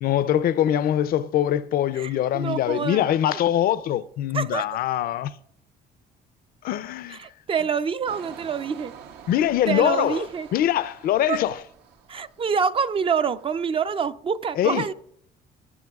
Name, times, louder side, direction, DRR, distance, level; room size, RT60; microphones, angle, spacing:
voice 1, 0.0-5.3 6.6-7.2 9.3-10.2 10.5-11.6 14.6-14.9, left 11 dB, 60° left, 0.5 m, -23 dB
voice 2, 1.9-3.4 4.3-4.7 7.1-8.9 9.7-10.5 11.3-11.4 12.1-14.9, right 6 dB, 35° right, 0.4 m, -26 dB
Engine, 8.1-12.7 13.1-13.4, right 7 dB, 80° right, 0.9 m, -46 dB
18.5 x 8.6 x 2.3 m
cardioid pair, 110°, 17 cm